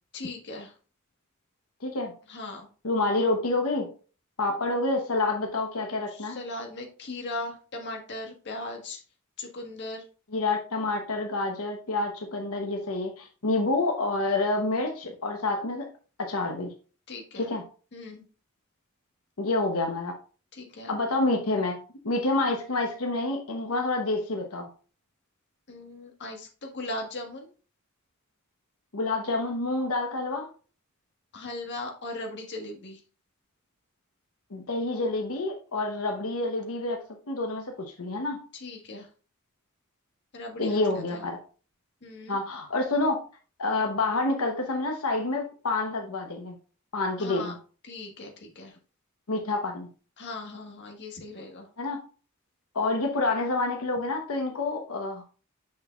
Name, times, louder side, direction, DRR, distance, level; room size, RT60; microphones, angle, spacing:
voice 1, 0.1-0.7 2.3-2.7 6.1-9.0 9.4-10.0 17.1-17.5 17.9-18.2 20.5-20.9 25.7-27.5 31.3-33.0 38.5-39.1 40.3-41.3 42.0-42.4 47.2-47.5 47.8-48.8 50.2-51.7, left 2 dB, 55° left, 2 dB, 1.5 m, -38 dB
voice 2, 1.8-2.1 2.8-3.9 4.4-6.4 10.3-15.9 16.2-16.7 17.4-17.6 19.4-20.1 20.9-21.8 22.0-24.7 28.9-30.5 34.5-37.0 37.3-38.4 40.6-41.4 42.3-43.2 43.6-46.6 46.9-47.6 49.3-49.9 51.8-52.0 52.7-55.2, left 2 dB, 90° left, 2 dB, 1.0 m, -28 dB
6.4 x 6.1 x 2.4 m, 0.37 s
head